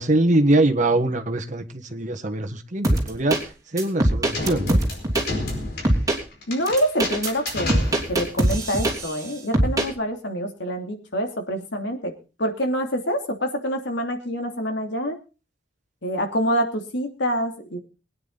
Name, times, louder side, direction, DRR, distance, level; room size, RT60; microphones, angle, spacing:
voice 1, 0.0-3.4 3.7-4.8, right 2 dB, 45° right, 5 dB, 1.5 m, -22 dB
sound 1, 2.8-3.4 3.8-5.3 5.8-6.2 6.7-9.2 9.5-9.9, right 1 dB, 20° right, 3.2 m, -21 dB
sound 2, 4.3-8.4, left 2 dB, 60° left, 4.8 m, -31 dB
voice 2, 6.5-12.1 12.4-15.2 16.0-17.8, equal, 75° left, 3 dB, 2.9 m, -26 dB
22.5 x 9.6 x 4.0 m, 0.33 s
head